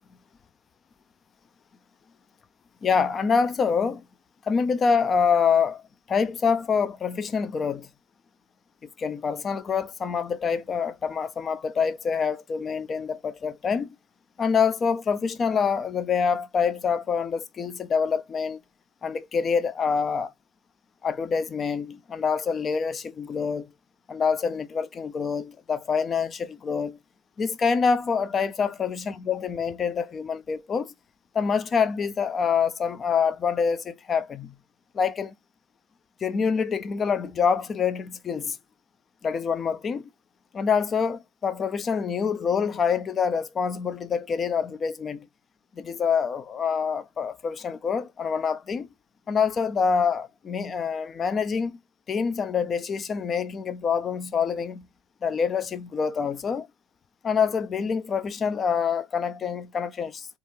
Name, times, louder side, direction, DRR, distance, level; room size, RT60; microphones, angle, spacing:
voice 1, 2.8-4.0 4.4-5.8 6.1-7.9 9.0-14.0 14.4-18.6 19.0-20.3 21.0-23.7 24.1-27.0 27.4-30.9 31.3-34.5 34.9-35.3 36.2-38.6 39.2-40.1 40.5-45.3 45.8-48.9 49.3-51.8 52.1-54.9 55.2-56.7 57.2-60.3, left 6 dB, 35° left, 0.5 m, -26 dB
3.0 x 2.4 x 2.6 m
hypercardioid pair, 80°, 0 cm